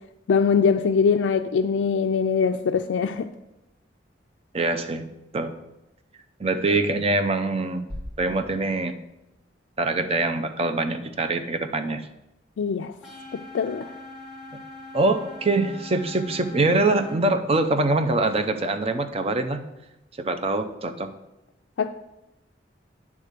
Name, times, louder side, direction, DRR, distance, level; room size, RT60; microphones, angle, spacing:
voice 1, 0.3-3.3 12.6-12.9 13.3-13.9 21.8-21.9, left 6 dB, 90° left, 5 dB, 0.3 m, -22 dB
voice 2, 4.5-5.1 5.3-5.5 6.4-7.9 8.2-8.9 9.8-12.1 14.9-19.6 20.2-21.1, right 2 dB, 35° right, 7 dB, 0.6 m, -24 dB
sound 1, 7.9-9.7, left 1 dB, 55° right, 1.9 m, -41 dB
sound 2, 13.0-17.2, left 2 dB, ahead, 1.7 m, -42 dB
9.6 x 3.6 x 6.6 m, 0.94 s
head